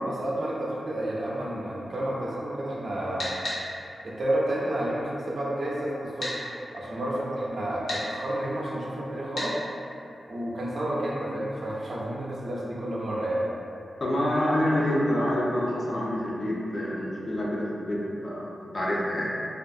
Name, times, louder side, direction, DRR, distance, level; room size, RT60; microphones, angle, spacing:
voice 1, 0.1-3.3 4.0-9.6 10.3-13.5, right 1 dB, 45° right, -5 dB, 0.4 m, -30 dB
sound 1, 3.2-3.6 6.2-6.4 7.9-8.0 9.3-9.5, left 1 dB, 70° left, 0.9 m, -31 dB
voice 2, 14.0-19.4, left 1 dB, 30° left, -5 dB, 0.3 m, -27 dB
2.5 x 2.3 x 2.6 m, 2.8 s
wide cardioid pair, 175°, 0 cm